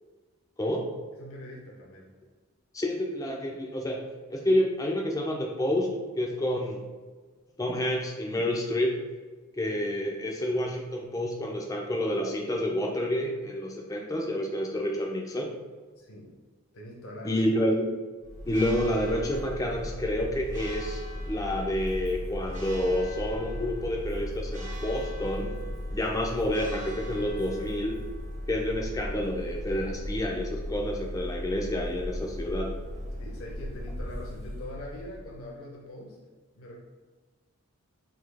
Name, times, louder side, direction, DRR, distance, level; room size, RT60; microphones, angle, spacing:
voice 1, 0.6-0.9 2.7-4.0 4.3-5.9 6.2-6.8 7.6-9.0 9.5-15.5 17.2-17.9 18.5-21.0 21.3-25.5 25.9-28.0 28.5-32.7, left 1 dB, 15° left, -1 dB, 0.4 m, -29 dB
voice 2, 1.2-2.2 16.0-16.3 16.7-17.4 33.2-36.2 36.5-36.8, left 1 dB, 70° left, -3 dB, 0.8 m, -43 dB
Church bell, 18.2-35.5, left 1 dB, 35° right, 0.7 m, -37 dB
3.9 x 2.7 x 3.3 m, 1.4 s
head